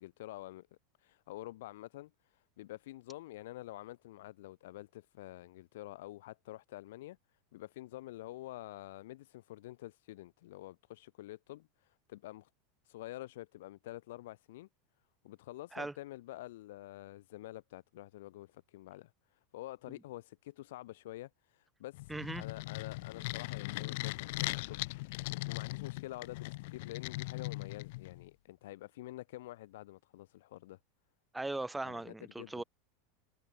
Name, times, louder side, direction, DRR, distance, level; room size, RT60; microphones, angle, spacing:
voice 1, 0.0-7.2 7.5-12.5 12.8-14.7 15.2-24.9 25.5-30.8 31.8-32.6, left 16 dB, 75° left, 1.9 m, -48 dB
sound 1, 21.9-28.3, left 22 dB, 60° left, 1.1 m, -39 dB
voice 2, 22.1-22.4 31.3-32.6, right 2 dB, 5° right, 0.4 m, -39 dB
supercardioid pair, 160°, 0 cm